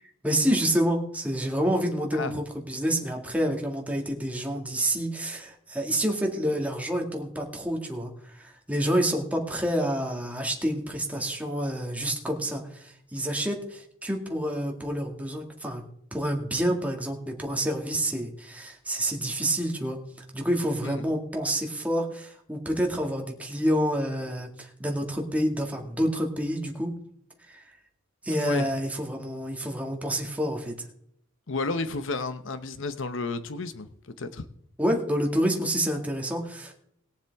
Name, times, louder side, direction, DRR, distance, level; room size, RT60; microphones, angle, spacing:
voice 1, 0.2-15.8 16.1-26.9 27.4-27.6 28.2-30.7 34.8-36.7, equal, 5° right, 1 dB, 2.0 m, -28 dB
voice 2, 2.1-2.4 20.8-21.1 28.4-28.7 31.5-34.4, left 3 dB, 65° left, 11 dB, 0.9 m, -32 dB
21.0 x 7.3 x 3.5 m, 0.71 s
head